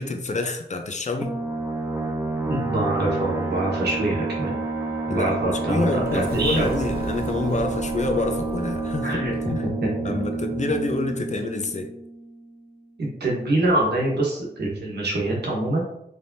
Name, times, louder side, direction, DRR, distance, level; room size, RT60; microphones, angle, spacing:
voice 1, 0.0-1.4 5.1-5.4 5.7-9.6 10.0-11.9, left 2 dB, 45° left, 5 dB, 0.6 m, -27 dB
sound 1, 1.2-12.5, right 3 dB, 10° right, 0.6 m, -29 dB
voice 2, 2.5-4.6 5.1-6.7 9.0-9.3 9.8-9.9 13.0-15.8, right 2 dB, 80° right, -3 dB, 1.2 m, -25 dB
Sliding door, 4.9-9.7, right 1 dB, 65° right, 0.8 m, -37 dB
4.7 x 3.3 x 2.7 m, 0.78 s
wide cardioid pair, 105°, 17 cm